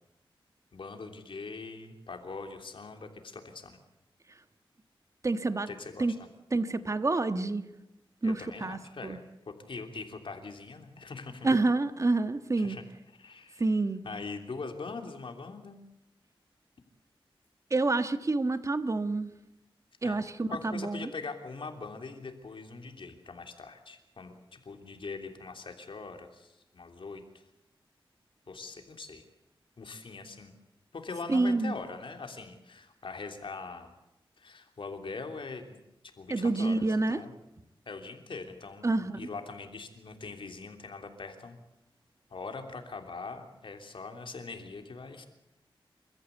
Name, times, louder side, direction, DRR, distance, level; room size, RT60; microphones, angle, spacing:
voice 1, 0.7-3.8 5.7-6.2 8.2-9.2 9.5-11.5 12.6-12.8 13.2-13.7 14.0-15.8 20.0-27.4 28.5-29.2 29.8-30.5 30.9-33.9 34.4-35.7 36.2-37.3 37.9-41.6 42.3-45.3, left 4 dB, 65° left, 5 dB, 3.2 m, -42 dB
voice 2, 5.2-5.7 6.0-6.1 6.5-7.6 8.2-9.2 11.4-12.8 13.6-14.0 17.7-19.3 20.0-21.1 31.3-31.7 36.3-37.2 38.8-39.2, right 3 dB, 35° right, 11 dB, 1.4 m, -28 dB
29.0 x 14.0 x 8.2 m, 0.87 s
wide cardioid pair, 85°, 9 cm